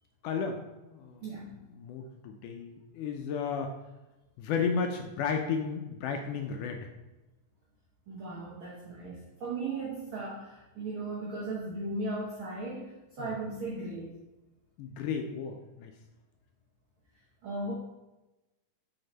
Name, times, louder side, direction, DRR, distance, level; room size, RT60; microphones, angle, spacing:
voice 1, 0.2-3.7 4.4-6.8 13.2-13.4 14.8-15.9, left 6 dB, 80° left, 4 dB, 1.9 m, -34 dB
voice 2, 1.2-1.5 8.1-14.1 17.4-17.7, right 2 dB, 85° right, -5 dB, 1.1 m, -37 dB
7.8 x 4.2 x 3.9 m, 1.0 s
omnidirectional pair, 4.0 m